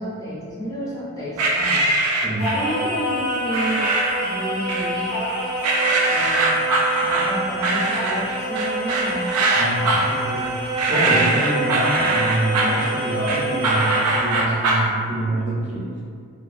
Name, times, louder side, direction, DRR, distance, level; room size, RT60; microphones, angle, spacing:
voice 1, 0.0-1.8 2.5-5.1 6.1-6.6 7.0-9.2, equal, 15° left, -8 dB, 0.4 m, -31 dB
sound 1, 1.4-2.7 3.5-4.3 4.7-5.3 5.6-14.9, right 2 dB, 85° right, 0.3 m, -22 dB
voice 2, 2.2-2.6 9.5-16.0, right 1 dB, 35° right, -7 dB, 0.5 m, -26 dB
Singing, 2.4-14.5, right 1 dB, 90° left, 0.8 m, -27 dB
2.5 x 2.3 x 2.4 m, 2.1 s
head